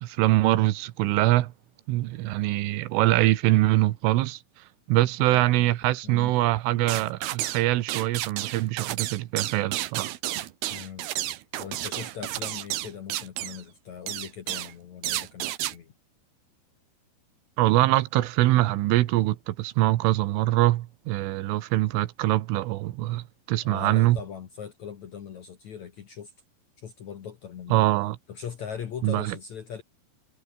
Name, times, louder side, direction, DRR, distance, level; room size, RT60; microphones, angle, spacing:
voice 1, 0.0-1.5 1.9-4.4 4.9-10.1 17.6-24.2 27.7-28.2 29.0-29.4, right 17 dB, 90° right, 3.7 m, -23 dB
voice 2, 5.2-5.8 6.0-6.4 10.7-11.1 11.6-15.9 23.6-26.3 26.8-27.9 28.3-29.8, left 8 dB, 60° left, 2.0 m, -40 dB
sound 1, 6.9-7.6 7.9-13.6 14.1-14.7 15.0-15.7, right 14 dB, 70° right, 2.7 m, -31 dB
omnidirectional pair, 5.6 m